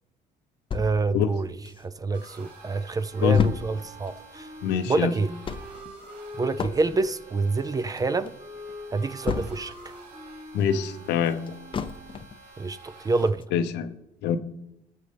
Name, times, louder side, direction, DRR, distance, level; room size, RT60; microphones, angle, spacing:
sound 1, 0.7-2.2 2.6-2.7 2.9-9.9 10.3-12.5 12.9-13.0 13.4-13.5, left 6 dB, 30° left, 0.5 m, -34 dB
voice 1, 0.7-1.5 1.8-4.5 4.9-5.3 6.4-8.3 8.9-9.7 12.6-13.4, right 3 dB, 20° right, 0.4 m, -27 dB
sound 2, 2.1-13.3, right 3 dB, 75° right, 4.6 m, -50 dB
sound 3, 3.1-12.3, equal, 35° right, 4.6 m, -45 dB
voice 2, 4.6-5.1 10.5-11.4 13.5-13.9 14.2-14.4, left 8 dB, 90° left, 0.8 m, -24 dB
19.0 x 6.5 x 3.4 m
cardioid pair, 110°, 17 cm